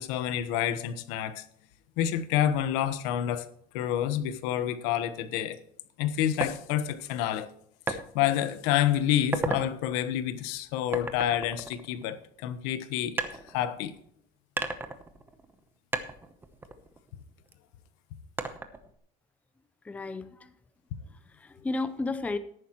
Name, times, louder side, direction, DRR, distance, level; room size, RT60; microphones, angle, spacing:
voice 1, 0.0-1.4 2.0-3.5 3.7-5.6 6.0-7.5 7.9-13.9, left 11 dB, 80° left, 12 dB, 1.2 m, -28 dB
sound 1, 6.4-6.6 7.9-8.0 8.6-8.8 9.2-9.7 10.9-12.4 13.2-14.1 14.6-15.6 15.9-17.5 18.4-19.0, right 3 dB, 10° right, 0.9 m, -34 dB
voice 2, 19.8-20.6 21.1-22.4, left 3 dB, 10° left, 11 dB, 0.5 m, -33 dB
13.5 x 11.0 x 3.0 m, 0.68 s
cardioid pair, 160°, 18 cm